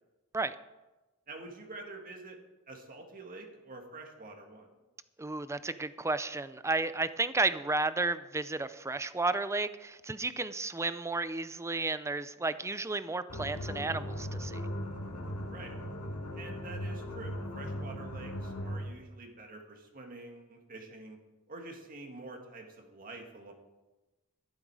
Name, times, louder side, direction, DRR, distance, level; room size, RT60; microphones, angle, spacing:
voice 1, 1.3-2.4 2.7-4.7 15.5-15.7 16.3-21.2 21.5-23.5, right 2 dB, 40° right, 2 dB, 2.0 m, -47 dB
voice 2, 5.2-14.6, right 3 dB, 15° right, 14 dB, 0.5 m, -32 dB
sound 1, 13.3-19.0, equal, 85° left, 2.2 m, -38 dB
13.0 x 12.0 x 4.8 m, 1.1 s
head